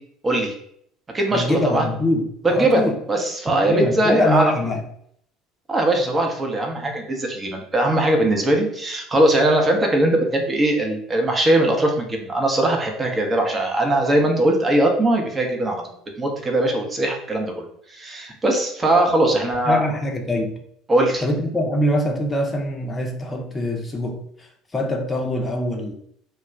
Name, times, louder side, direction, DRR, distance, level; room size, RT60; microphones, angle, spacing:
voice 1, 0.2-0.5 1.1-1.9 2.4-4.4 5.7-15.8 16.2-19.8 20.9-21.2, right 1 dB, 20° right, 2 dB, 0.7 m, -20 dB
voice 2, 1.3-2.9 3.6-4.8 19.7-20.6 21.2-25.9, left 1 dB, 20° left, 2 dB, 0.6 m, -23 dB
2.2 x 2.1 x 3.5 m, 0.68 s
figure-of-eight pair, 60°, 0 cm